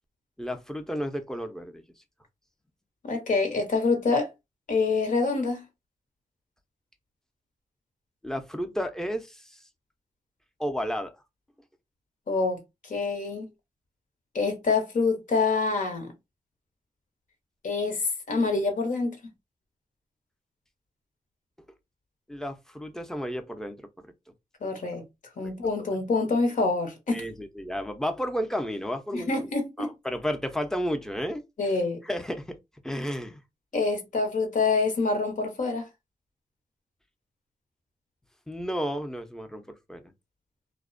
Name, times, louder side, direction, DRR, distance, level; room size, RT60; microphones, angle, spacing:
voice 1, 0.4-1.8 8.2-9.6 10.6-11.1 22.3-23.8 27.1-29.5 29.8-31.4 32.0-32.6 32.8-33.4 38.5-39.6 39.9-40.1, equal, 5° left, 0.6 m, -32 dB
voice 2, 3.0-4.3 4.7-5.6 12.3-13.5 14.3-16.1 17.6-19.1 24.6-25.0 25.4-27.2 29.1-29.9 31.6-32.0 33.7-35.9, left 3 dB, 60° left, 0.9 m, -26 dB
2.4 x 2.1 x 2.5 m
cardioid pair, 60°, 15 cm